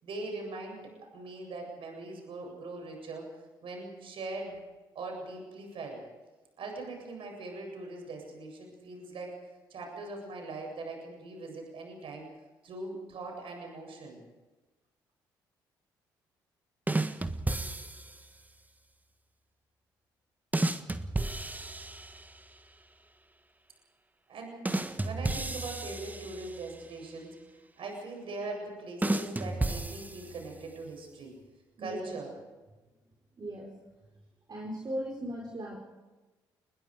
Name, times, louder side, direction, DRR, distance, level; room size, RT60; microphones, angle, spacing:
voice 1, 0.0-3.3 3.6-4.6 4.9-6.0 6.6-9.4 9.7-12.3 12.6-14.2 24.3-24.7 25.0-27.3 27.8-31.3 31.8-32.3, right 2 dB, 55° right, 2 dB, 7.8 m, -41 dB
sound 1, 16.9-18.3 20.5-22.5 24.6-26.8 29.0-30.6, right 2 dB, 15° right, 1.5 m, -33 dB
voice 2, 31.8-32.1 33.4-33.7 34.5-35.8, equal, 40° right, -1 dB, 4.3 m, -37 dB
28.0 x 21.0 x 5.0 m, 1.2 s
hypercardioid pair, 50°, 11 cm